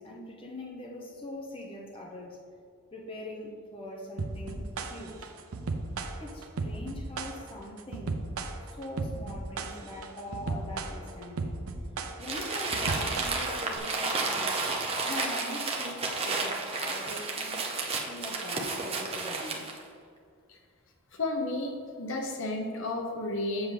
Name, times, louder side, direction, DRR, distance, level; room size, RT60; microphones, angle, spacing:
voice 1, 0.0-2.4 2.9-5.3 6.2-8.3 8.7-11.6 12.2-14.6 15.0-17.6 18.0-19.7, left 1 dB, 25° left, -2 dB, 0.7 m, -42 dB
sound 1, 4.2-13.8, right 3 dB, 75° right, 0.6 m, -35 dB
Crumpling crinkling, 12.2-19.8, right 3 dB, 25° right, 0.6 m, -32 dB
voice 2, 21.1-23.7, left 2 dB, 60° left, 2 dB, 0.9 m, -32 dB
7.2 x 7.1 x 3.3 m, 2.2 s
head